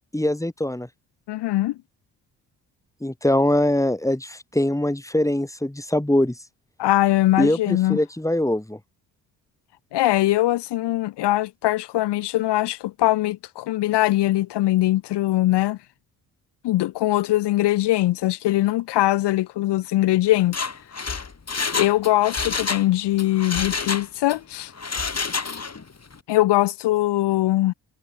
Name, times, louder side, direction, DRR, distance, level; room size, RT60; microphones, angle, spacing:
voice 1, 0.1-0.9 3.0-6.4 7.4-8.8, left 1 dB, 5° left, 5.4 m, -22 dB
voice 2, 1.3-1.8 6.8-8.0 9.9-15.8 16.6-20.6 21.7-24.7 26.3-27.7, left 16 dB, 70° left, 1.1 m, -21 dB
Mechanisms, 20.4-22.9 23.2-24.4 24.8-25.8 26.1-26.2, left 4 dB, 35° left, 7.8 m, -28 dB
supercardioid pair, 50°, 42 cm